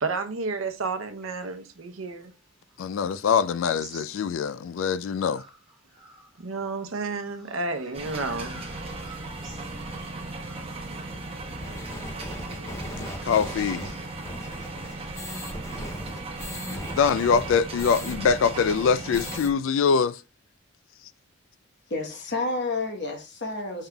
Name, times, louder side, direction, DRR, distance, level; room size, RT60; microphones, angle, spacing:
voice 1, 0.0-2.3 6.4-8.6, right 3 dB, 90° right, 0.8 m, -31 dB
sound 1, 1.2-4.8 5.2-11.9, right 2 dB, 5° right, 1.8 m, -51 dB
voice 2, 2.8-5.4 12.9-14.0 16.7-20.2, left 6 dB, 70° left, 0.3 m, -24 dB
sound 2, 7.9-19.4, right 2 dB, 30° right, 0.9 m, -37 dB
sound 3, 11.6-18.2 18.5-18.6 18.9-19.5, left 1 dB, 15° left, 0.6 m, -38 dB
voice 3, 21.9-23.9, left 3 dB, 55° left, 1.1 m, -30 dB
5.5 x 3.6 x 2.3 m
head